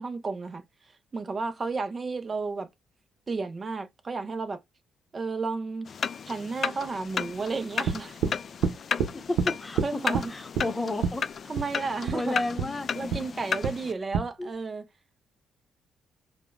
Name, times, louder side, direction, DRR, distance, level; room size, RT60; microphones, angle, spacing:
voice 1, 0.0-2.7 3.3-4.6 5.1-5.9 6.3-8.4 9.8-10.3 11.5-12.4 12.9-14.8, right 4 dB, 35° right, 0.4 m, -32 dB
sound 1, 5.9-13.9, left 6 dB, 50° left, 0.3 m, -34 dB
sound 2, 7.9-8.4 8.6-9.1 9.4-9.5 9.8-10.3 10.6-10.7 11.0-11.2 11.6-11.7 12.1-12.2 12.6-12.7 13.1-13.3 13.6-13.8 14.1-14.3, right 7 dB, 90° right, 0.5 m, -27 dB
voice 2, 9.3-11.3 12.1-12.9 14.4-14.5, left 2 dB, 20° left, 0.8 m, -32 dB
4.9 x 2.1 x 2.3 m
cardioid pair, 90°, 0 cm